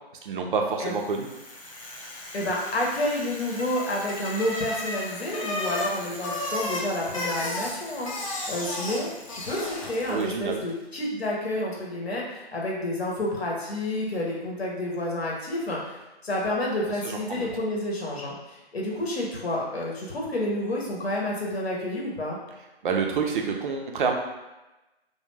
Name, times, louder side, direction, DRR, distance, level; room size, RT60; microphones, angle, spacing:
voice 1, 0.2-1.3 10.1-10.6 17.0-17.5 22.8-24.2, right 5 dB, 55° right, 2 dB, 0.5 m, -27 dB
Bicycle, 0.9-10.4, left 1 dB, 35° left, 0.4 m, -34 dB
voice 2, 2.3-22.4, left 1 dB, 75° left, -2 dB, 0.9 m, -30 dB
2.3 x 2.2 x 3.1 m, 1.0 s
figure-of-eight pair, 145°, 32 cm